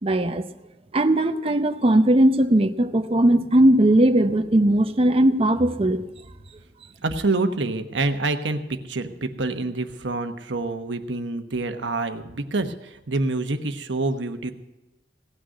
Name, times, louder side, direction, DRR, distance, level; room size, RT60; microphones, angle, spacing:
voice 1, 0.0-0.5 0.9-6.1, right 1 dB, 30° right, 8 dB, 0.6 m, -18 dB
voice 2, 7.0-8.6 8.8-14.5, right 2 dB, 80° right, 8 dB, 1.1 m, -27 dB
17.0 x 6.4 x 9.4 m, 1.0 s
head